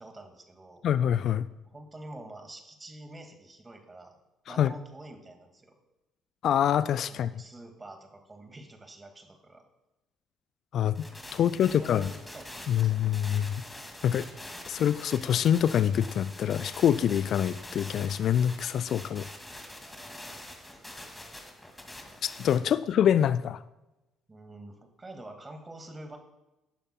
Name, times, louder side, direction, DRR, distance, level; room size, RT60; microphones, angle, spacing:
voice 1, 0.0-0.8 1.6-4.2 4.5-5.7 7.1-9.6 11.3-13.0 19.8-21.4 22.7-22.8 24.3-26.2, right 1 dB, 20° right, 5 dB, 2.1 m, -47 dB
voice 2, 0.8-1.5 4.5-4.7 6.4-7.3 10.7-11.1 11.3-12.1 12.7-13.6 14.0-14.3 14.7-19.3 22.2-23.6, left 9 dB, 50° left, 16 dB, 0.3 m, -25 dB
sound 1, 11.0-22.6, left 1 dB, 10° left, 2.3 m, -45 dB
17.0 x 11.5 x 2.3 m, 0.99 s
figure-of-eight pair, 50°, 0 cm